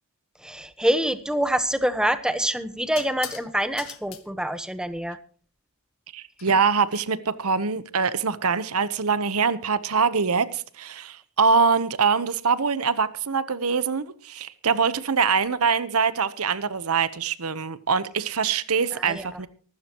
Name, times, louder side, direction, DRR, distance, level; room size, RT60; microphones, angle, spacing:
voice 1, 0.4-5.2 18.9-19.3, equal, 5° right, 11 dB, 1.0 m, -26 dB
sound 1, 1.7-1.9 3.0-3.5 3.8-4.2 6.4-7.0, left 9 dB, 75° left, 1.7 m, -40 dB
voice 2, 6.1-19.5, right 5 dB, 85° right, 15 dB, 1.0 m, -24 dB
24.0 x 12.5 x 3.0 m, 0.40 s
head